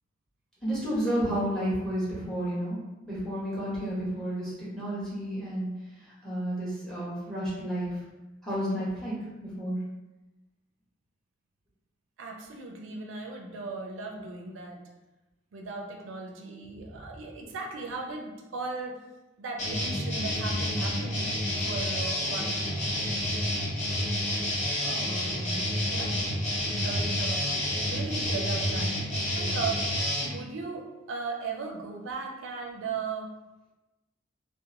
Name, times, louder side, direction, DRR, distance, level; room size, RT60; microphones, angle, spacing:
voice 1, 0.6-2.8 3.1-5.7 6.0-8.0 8.4-9.8 22.4-22.5, equal, 5° left, -8 dB, 0.9 m, -31 dB
voice 2, 12.2-14.8 15.5-19.0 19.4-21.4 21.6-22.7 24.8-26.2 26.8-27.4 27.8-28.9 29.3-29.8 30.2-33.3, right 4 dB, 85° right, 1 dB, 0.4 m, -37 dB
sound 1, 19.6-30.3, left 1 dB, 35° left, 0.6 m, -29 dB
2.8 x 2.1 x 2.5 m, 1.0 s
head